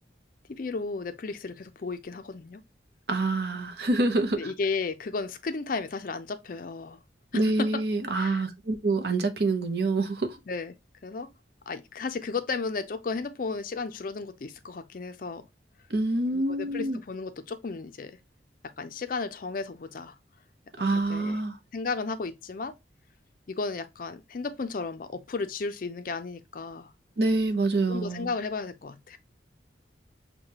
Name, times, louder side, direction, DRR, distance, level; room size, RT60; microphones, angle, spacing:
voice 1, 0.5-2.6 4.4-7.0 7.3-7.8 8.1-8.4 10.5-10.7 11.0-11.3 11.7-15.4 16.3-18.2 18.8-20.2 20.9-21.4 21.7-22.8 23.5-26.9 27.9-29.2, left 4 dB, 45° left, 0.4 m, -34 dB
voice 2, 3.1-4.4 7.3-10.4 15.9-17.0 20.8-21.6 27.2-28.3, right 2 dB, 55° right, 0.7 m, -26 dB
6.3 x 2.2 x 2.9 m
head